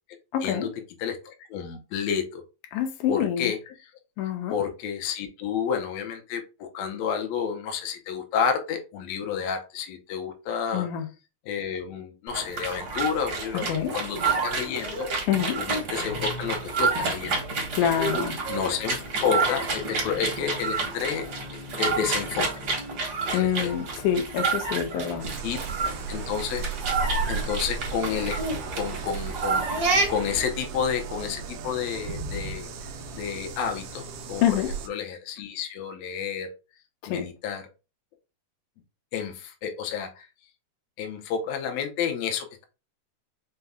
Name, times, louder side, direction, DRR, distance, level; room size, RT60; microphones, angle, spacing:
voice 1, 0.3-0.7 2.7-3.5 4.2-4.5 10.7-11.1 13.7-14.0 15.3-15.6 17.7-18.4 23.3-25.3 34.4-34.7 37.0-37.3, left 9 dB, 90° left, 2.2 m, -26 dB
voice 2, 1.0-2.4 3.1-3.6 4.5-10.9 11.5-13.7 13.9-15.1 15.6-17.5 18.5-21.2 21.8-22.6 23.3-23.7 25.4-25.6 26.1-26.7 27.3-28.4 28.7-32.7 33.1-34.4 34.9-36.5 37.1-37.6 39.1-40.3 41.0-42.6, left 7 dB, 70° left, 1.8 m, -30 dB
sound 1, 12.3-30.4, right 4 dB, 50° right, 1.2 m, -29 dB
sound 2, 25.2-34.9, right 4 dB, 75° right, 1.5 m, -35 dB
5.4 x 2.3 x 3.5 m
omnidirectional pair, 3.5 m